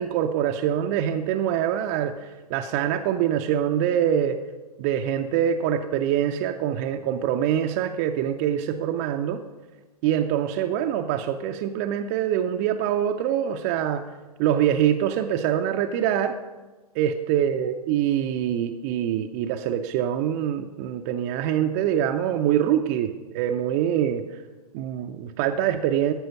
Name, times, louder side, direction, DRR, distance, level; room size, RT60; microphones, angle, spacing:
voice 1, 0.0-4.4 4.8-9.4 10.0-14.0 14.4-16.4 16.9-24.4 24.7-26.1, right 10 dB, 25° right, 6 dB, 0.4 m, -24 dB
12.5 x 6.2 x 5.2 m, 1.2 s
figure-of-eight pair, 115°, 20 cm